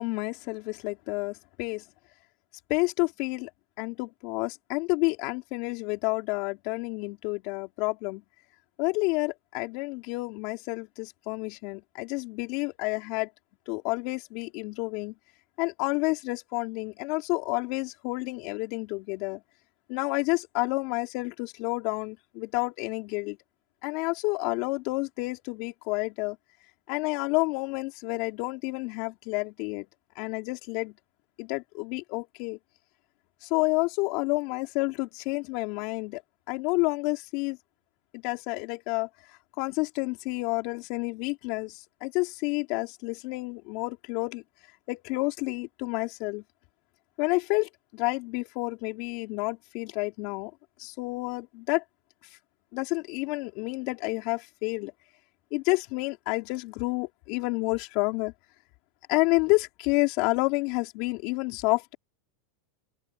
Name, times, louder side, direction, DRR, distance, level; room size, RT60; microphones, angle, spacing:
voice 1, 0.0-1.8 2.7-3.5 3.8-8.2 8.8-13.3 13.7-15.1 15.6-19.4 19.9-23.4 23.8-26.4 26.9-29.9 30.1-30.9 31.4-32.6 33.4-36.2 36.5-37.6 38.1-39.1 39.6-44.4 44.9-46.4 47.2-50.5 50.8-51.8 52.7-54.9 55.5-58.3 59.1-61.9, left 25 dB, 50° left, 4.8 m, -29 dB
open air
supercardioid pair, 155°, 0 cm